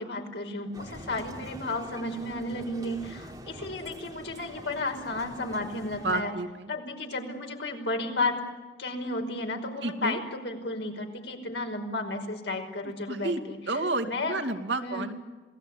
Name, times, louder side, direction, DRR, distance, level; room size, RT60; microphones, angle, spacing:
voice 1, 0.0-6.3 6.7-8.4 8.8-13.8 14.1-14.4 14.8-15.0, left 2 dB, 75° left, 3 dB, 5.4 m, -33 dB
Male speech man speaking, 0.7-6.2, right 1 dB, 20° right, 3.2 m, -45 dB
voice 2, 6.0-6.7 9.8-10.2 13.1-13.4 13.7-15.1, right 2 dB, 70° right, 7 dB, 2.3 m, -30 dB
27.5 x 18.5 x 9.8 m, 1.3 s
head